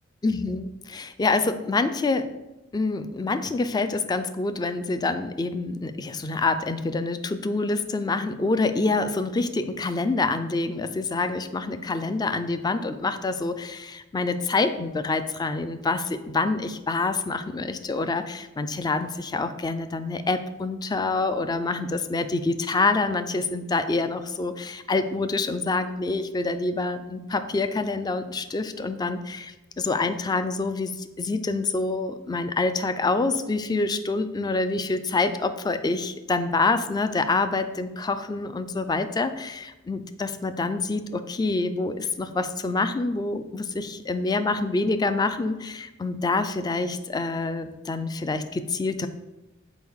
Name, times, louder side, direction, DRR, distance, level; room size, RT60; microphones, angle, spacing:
voice 1, 0.2-2.3 2.7-49.1, left 3 dB, 20° left, 10 dB, 0.3 m, -26 dB
6.1 x 4.5 x 3.6 m, 1.0 s
head